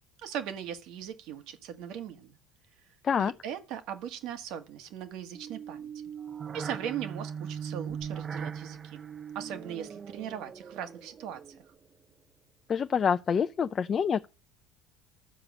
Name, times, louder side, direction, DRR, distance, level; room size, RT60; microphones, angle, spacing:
voice 1, 0.2-2.4 3.2-5.9 6.5-9.0 9.3-11.5, right 9 dB, 70° right, 1.6 m, -39 dB
sound 1, 5.3-11.7, right 7 dB, 35° right, 0.6 m, -40 dB
voice 2, 12.7-14.3, left 7 dB, 40° left, 0.5 m, -26 dB
12.0 x 5.0 x 7.3 m
supercardioid pair, 95°, 0 cm